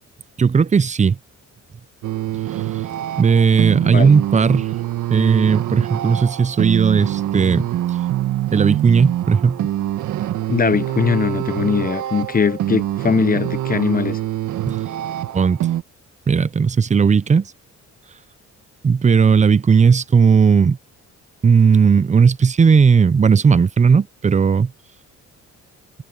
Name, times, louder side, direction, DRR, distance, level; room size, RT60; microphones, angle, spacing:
voice 1, 0.4-1.2 2.5-2.9 3.2-4.7 5.1-8.0 8.5-9.7 14.7-14.8 15.3-15.6 16.3-17.5 18.8-20.8 21.4-24.7, right 6 dB, 25° right, 0.6 m, -16 dB
sound 1, 2.0-15.8, right 13 dB, 80° right, 1.7 m, -25 dB
voice 2, 10.5-14.2, left 6 dB, 30° left, 0.8 m, -20 dB
cardioid pair, 90°, 30 cm